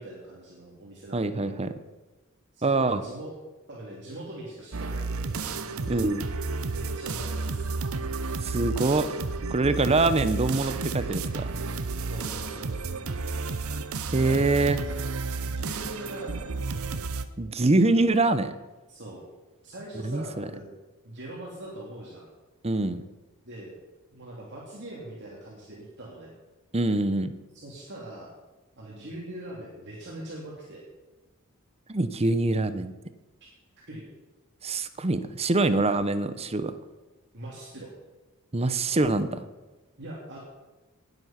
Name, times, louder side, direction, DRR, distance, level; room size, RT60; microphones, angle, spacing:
voice 1, 0.0-1.6 2.5-3.3 3.7-5.6 6.7-7.7 12.1-12.7 14.3-14.8 15.4-16.9 18.9-19.2 19.6-20.8 21.0-22.3 23.4-23.8 24.1-26.3 27.5-28.3 28.8-30.8 33.9-34.0 37.3-37.9 40.0-40.4, right 1 dB, 55° right, -4 dB, 2.7 m, -42 dB
voice 2, 1.1-1.7 2.6-3.0 5.9-6.3 8.4-9.1 9.5-11.5 14.1-14.8 17.4-18.5 20.0-20.5 22.6-23.0 26.7-27.3 31.9-32.9 34.6-36.7 38.5-39.4, right 2 dB, 30° right, 12 dB, 0.8 m, -24 dB
sound 1, 4.7-17.2, right 3 dB, 70° right, 0.8 m, -32 dB
19.0 x 8.1 x 5.9 m, 1.2 s
head